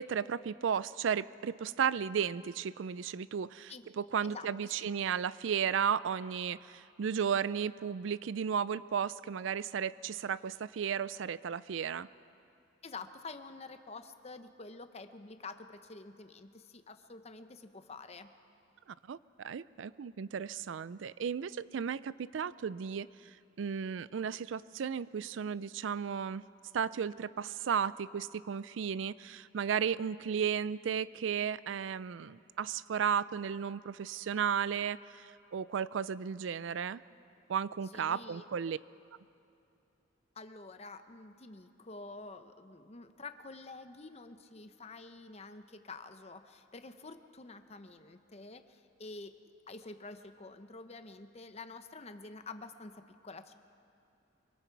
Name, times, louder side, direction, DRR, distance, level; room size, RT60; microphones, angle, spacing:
voice 1, 0.0-12.1 19.1-26.4 26.7-37.0 37.5-38.8, right 7 dB, 70° right, 18 dB, 0.4 m, -34 dB
voice 2, 12.8-18.3 37.9-38.5 40.4-49.4 49.7-53.5, left 3 dB, 35° left, 9 dB, 0.9 m, -48 dB
25.0 x 23.5 x 4.6 m, 2.6 s
head